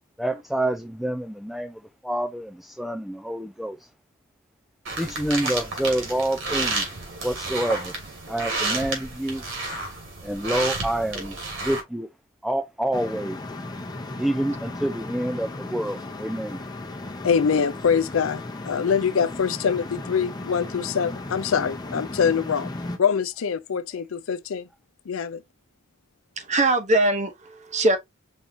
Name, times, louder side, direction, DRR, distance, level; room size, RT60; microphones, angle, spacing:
voice 1, 0.2-3.9 4.9-6.9 7.2-7.9 8.3-9.4 10.2-11.4 11.6-12.1 12.4-13.4 14.2-16.6, right 1 dB, ahead, 0.3 m, -27 dB
sound 1, 4.9-11.8, right 3 dB, 65° right, 2.3 m, -31 dB
sound 2, 12.9-23.0, left 2 dB, 20° left, 0.8 m, -36 dB
voice 2, 17.2-22.7 23.0-24.7 25.1-25.4, left 6 dB, 80° left, 0.4 m, -24 dB
voice 3, 26.4-28.0, right 2 dB, 35° right, 0.9 m, -22 dB
5.3 x 3.5 x 2.7 m
head